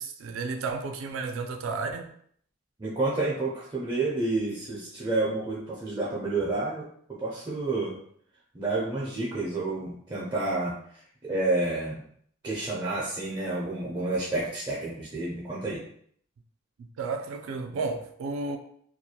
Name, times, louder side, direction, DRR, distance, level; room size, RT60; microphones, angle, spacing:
voice 1, 0.0-2.1 16.8-18.6, right 4 dB, 90° right, 0.4 m, -32 dB
voice 2, 2.8-6.9 7.2-8.0 8.5-10.7 11.2-12.0 12.4-15.8, right 2 dB, 20° right, 0.4 m, -29 dB
2.4 x 2.2 x 2.8 m
head